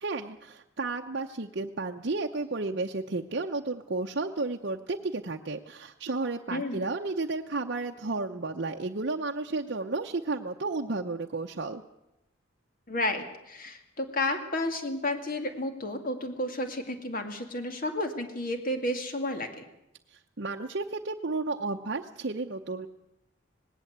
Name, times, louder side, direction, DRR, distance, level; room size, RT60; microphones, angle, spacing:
voice 1, 0.0-11.8 20.1-22.9, right 3 dB, 55° right, 1 dB, 0.8 m, -32 dB
voice 2, 6.5-6.8 12.9-19.6, left 1 dB, 45° left, 6 dB, 2.3 m, -32 dB
19.0 x 17.5 x 8.1 m, 0.87 s
head